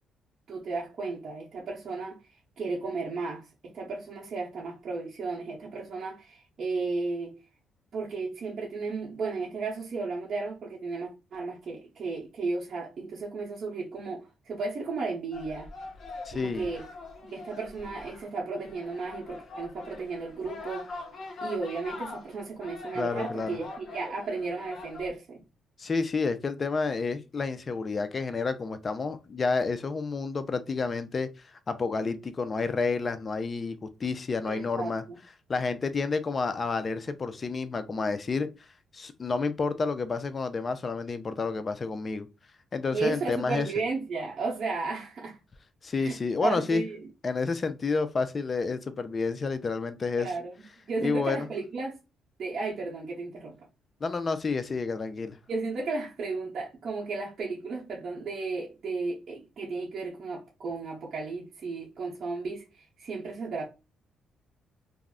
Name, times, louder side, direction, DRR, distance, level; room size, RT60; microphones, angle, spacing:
voice 1, 0.5-2.2 2.6-7.4 7.9-15.7 16.3-16.9 17.2-21.0 21.4-25.4 34.5-35.2 42.9-45.4 46.0-47.1 50.2-50.5 50.8-52.0 52.4-53.7 55.5-63.7, right 4 dB, 55° right, 0.8 m, -34 dB
sound 1, 15.3-25.1, left 3 dB, 50° left, 0.8 m, -43 dB
voice 2, 16.3-16.7 23.0-23.6 25.8-31.3 31.7-35.0 35.5-38.5 38.9-42.3 42.7-43.7 45.8-46.8 47.2-50.3 51.0-51.5 54.0-55.4, left 4 dB, 35° left, 0.4 m, -30 dB
2.3 x 2.0 x 3.5 m
cardioid pair, 90°, 0 cm